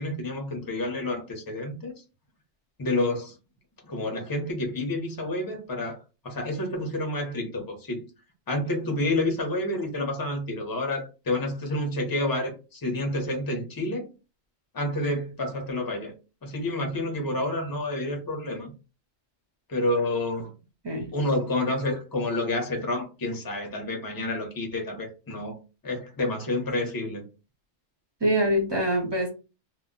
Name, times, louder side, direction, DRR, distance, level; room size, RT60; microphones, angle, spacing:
voice 1, 0.0-1.9 2.8-3.3 3.8-6.0 6.2-8.0 8.5-14.1 14.7-16.1 16.4-18.7 19.7-20.5 21.1-25.5 25.8-27.2, left 1 dB, 25° left, 0.4 m, -29 dB
voice 2, 28.2-29.3, equal, 25° right, 0.5 m, -24 dB
2.2 x 2.0 x 3.7 m
omnidirectional pair, 1.3 m